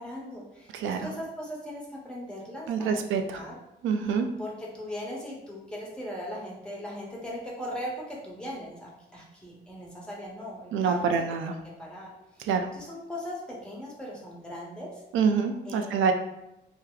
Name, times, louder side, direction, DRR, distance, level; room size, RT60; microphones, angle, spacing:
voice 1, 0.0-3.0 3.3-3.5 4.4-11.0 11.4-15.0 15.6-16.1, equal, 5° left, -4 dB, 1.1 m, -39 dB
voice 2, 2.7-3.2 3.8-4.3 10.7-11.5 12.5-12.7 15.1-16.1, right 6 dB, 80° right, 6 dB, 0.5 m, -26 dB
2.8 x 2.1 x 3.8 m, 0.89 s
cardioid pair, 90°, 20 cm